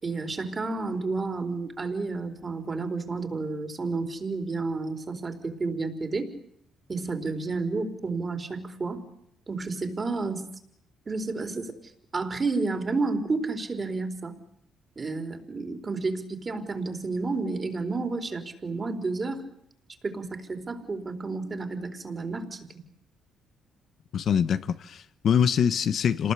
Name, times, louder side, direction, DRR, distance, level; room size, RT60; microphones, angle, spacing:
voice 1, 0.0-6.3 6.9-9.0 9.5-10.5 11.1-11.8 12.1-14.3 15.0-19.4 20.0-22.7, right 3 dB, 35° right, 4.2 m, -31 dB
voice 2, 24.1-26.3, left 8 dB, 60° left, 1.1 m, -24 dB
27.0 x 19.5 x 8.4 m
cardioid pair, 90°, 0 cm